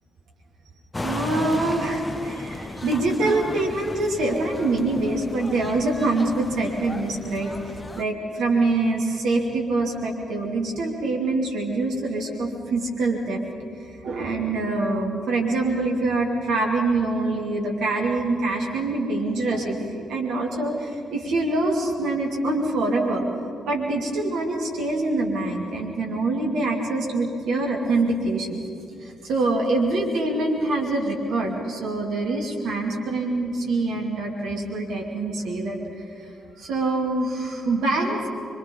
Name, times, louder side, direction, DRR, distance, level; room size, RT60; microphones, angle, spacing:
sound 1, 0.9-8.0, left 2 dB, 20° left, 1.0 m, -35 dB
voice 1, 1.0-13.4 14.0-23.3 23.7-28.6 29.0-35.8 36.2-36.3 36.6-38.3, right 2 dB, 60° right, -2 dB, 2.6 m, -25 dB
24.5 x 23.5 x 5.5 m, 2.5 s
figure-of-eight pair, 40°, 0 cm